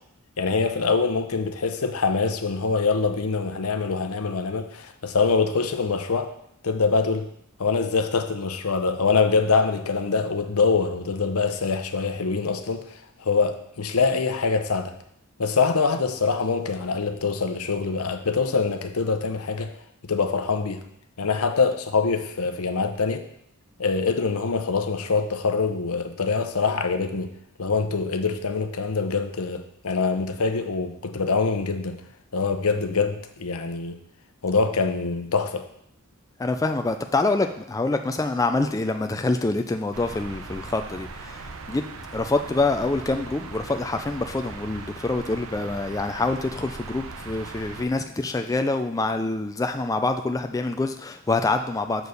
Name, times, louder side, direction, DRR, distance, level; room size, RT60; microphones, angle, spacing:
voice 1, 0.4-6.3 6.6-7.3 7.6-14.9 15.4-19.7 20.0-20.8 21.2-23.2 23.8-27.3 27.6-32.0 32.3-34.0 34.4-35.6, left 4 dB, 75° left, 8 dB, 0.7 m, -24 dB
voice 2, 36.4-41.8 42.1-52.1, left 2 dB, 15° left, 6 dB, 0.3 m, -26 dB
sound 1, 39.9-47.9, right 3 dB, 70° right, 0.7 m, -39 dB
6.9 x 4.6 x 6.4 m, 0.73 s
head